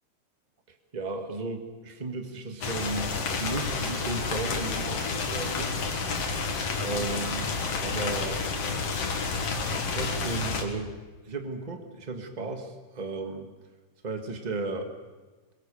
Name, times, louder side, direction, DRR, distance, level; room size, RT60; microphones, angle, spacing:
voice 1, 0.7-5.8 6.8-8.4 9.5-10.9 11.2-13.5 14.0-14.9, right 3 dB, 25° right, 5 dB, 0.9 m, -35 dB
sound 1, 2.6-10.6, left 4 dB, 50° left, 2.6 m, -30 dB
22.0 x 21.5 x 7.0 m, 1.3 s
omnidirectional pair, 4.0 m